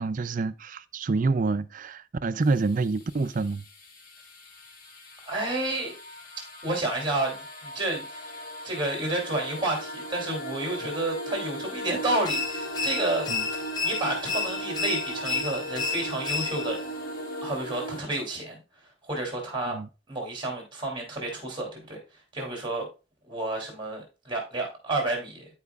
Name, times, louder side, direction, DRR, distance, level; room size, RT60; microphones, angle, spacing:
voice 1, 0.0-3.6 10.8-10.9 13.3-13.5 19.7-19.9, right 3 dB, 40° right, 0.4 m, -27 dB
sound 1, 2.4-18.0, right 1 dB, 45° left, 1.4 m, -38 dB
voice 2, 5.2-5.9 6.6-8.3 8.6-13.3 13.8-16.8 17.4-18.6 19.1-19.8 20.1-22.0 22.3-22.9 23.3-25.5, right 2 dB, 25° right, 2.8 m, -30 dB
sound 2, 12.2-16.9, left 4 dB, 20° left, 0.7 m, -31 dB
13.5 x 4.8 x 2.3 m
head